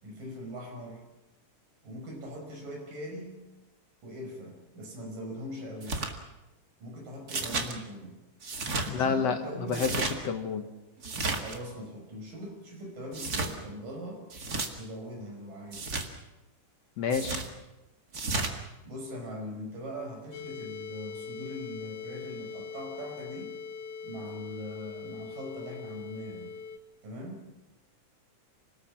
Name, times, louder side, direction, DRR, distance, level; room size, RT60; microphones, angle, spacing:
voice 1, 0.0-1.0 1.8-3.3 4.0-6.1 6.8-8.2 8.9-10.1 11.4-14.2 14.8-16.0 18.8-23.5 24.0-26.6 27.0-27.5, equal, 85° right, 1 dB, 7.2 m, -41 dB
sound 1, 5.8-6.1 7.3-7.7 8.4-8.9 9.7-10.1 11.0-11.6 13.1-13.5 14.3-14.7 15.7-16.1 17.1-17.5 18.1-18.5, right 3 dB, 35° right, 2.0 m, -32 dB
voice 2, 8.9-9.4 9.7-10.7 17.0-17.4, left 5 dB, 60° left, 6 dB, 2.2 m, -29 dB
sound 2, 20.3-26.8, left 6 dB, 75° left, 2.7 m, -41 dB
27.0 x 19.0 x 7.4 m, 1.0 s
omnidirectional pair, 3.7 m